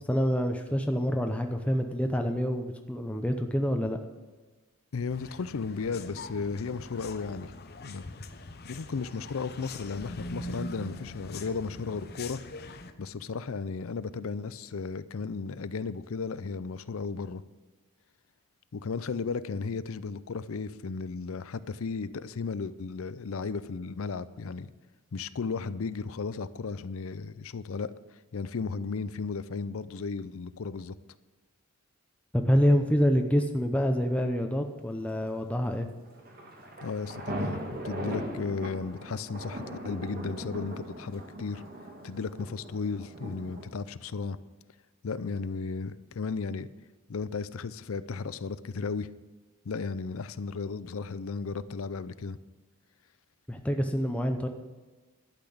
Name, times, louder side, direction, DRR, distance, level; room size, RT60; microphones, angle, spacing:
voice 1, 0.1-4.0 32.3-35.9 53.5-54.5, equal, 5° left, 4 dB, 0.6 m, -27 dB
voice 2, 4.9-7.5 7.8-8.0 8.7-12.4 13.0-17.4 18.7-24.7 25.1-27.9 28.3-31.0 36.8-41.6 42.0-44.4 45.0-46.7 47.1-49.1 49.7-52.4, left 4 dB, 75° left, 15 dB, 0.5 m, -34 dB
sound 1, 5.1-12.9, left 2 dB, 45° left, 0.8 m, -43 dB
sound 2, 36.1-43.7, right 1 dB, 45° right, 1.9 m, -39 dB
12.0 x 6.0 x 8.5 m, 1.3 s
head